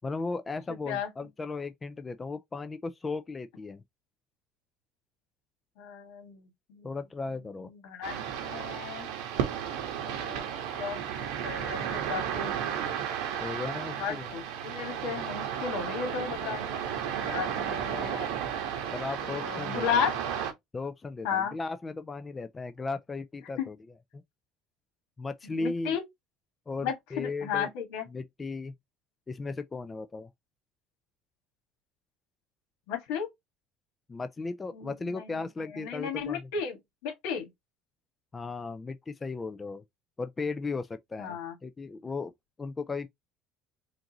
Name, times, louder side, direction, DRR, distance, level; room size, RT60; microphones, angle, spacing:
voice 1, 0.0-3.8 6.8-7.7 13.4-14.3 18.9-20.1 20.7-23.8 24.1-24.2 25.2-26.0 26.7-27.7 28.1-28.7 29.3-30.3 34.1-36.5 38.3-39.8 40.2-42.3 42.6-43.1, left 3 dB, 15° left, 0.3 m, -36 dB
voice 2, 5.8-6.9 7.6-9.1 10.0-10.5 10.8-11.1 11.4-12.5 14.0-18.3 19.2-20.1 21.2-21.6 23.6-23.7 25.4-26.0 26.8-28.1 32.9-33.3 34.7-35.4 35.7-36.8 37.0-37.5 41.2-41.5, left 7 dB, 85° left, 1.8 m, -34 dB
sound 1, 8.0-20.5, right 8 dB, 85° right, 1.2 m, -33 dB
5.0 x 2.6 x 2.9 m
cardioid pair, 150°, 0 cm